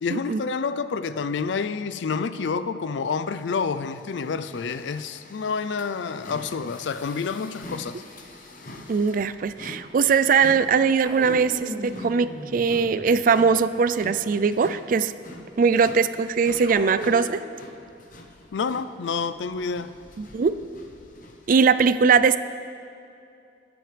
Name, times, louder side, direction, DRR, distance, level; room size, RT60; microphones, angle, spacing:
voice 1, 0.0-8.0 18.5-19.9, left 5 dB, 75° left, 13 dB, 0.4 m, -28 dB
sound 1, 3.3-21.5, left 1 dB, 45° left, 1.0 m, -45 dB
voice 2, 8.9-15.1 15.6-17.4 20.2-20.5 21.5-22.4, right 5 dB, 45° right, 13 dB, 0.3 m, -21 dB
sound 2, 11.0-13.5 16.6-17.6, equal, 30° right, 1.4 m, -38 dB
22.0 x 7.8 x 3.3 m, 2.5 s
head